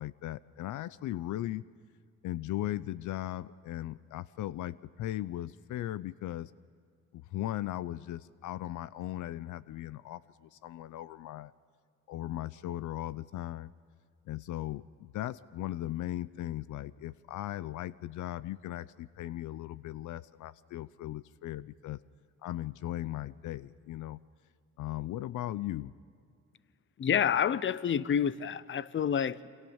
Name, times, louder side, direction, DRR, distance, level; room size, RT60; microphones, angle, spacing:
voice 1, 0.0-1.6 2.2-6.5 7.1-11.5 12.1-13.7 14.3-22.0 22.4-24.2 24.8-25.9, left 14 dB, 80° left, 0.6 m, -38 dB
voice 2, 27.0-29.5, left 8 dB, 40° left, 0.8 m, -28 dB
28.0 x 26.0 x 7.2 m
cardioid pair, 90°, 30 cm